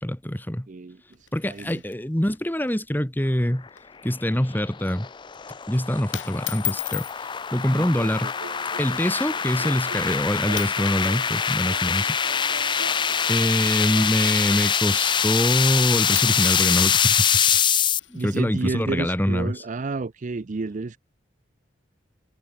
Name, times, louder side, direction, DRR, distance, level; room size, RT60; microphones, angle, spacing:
voice 1, 0.0-0.7 1.3-3.7 4.0-5.1 5.7-7.1 7.5-8.3 8.8-12.1 13.3-17.6 18.1-19.6, equal, 10° left, 1.5 m, -24 dB
voice 2, 0.7-1.0 1.4-1.8 7.7-8.1 18.1-21.0, right 3 dB, 45° right, 0.5 m, -30 dB
sound 1, 1.1-2.4 2.7-2.8 3.1-3.3 3.7-4.0 4.4-4.6 5.4-5.6 6.1-7.2 8.2-8.5 9.1-9.2 9.9-10.2 10.5-11.2 11.4-15.0 15.8-15.9 16.1-18.4, left 15 dB, 90° left, 5.2 m, -37 dB
sound 2, 4.1-18.0, left 7 dB, 25° left, 0.5 m, -24 dB
sound 3, 8.3-14.6, right 2 dB, 65° right, 4.0 m, -42 dB
head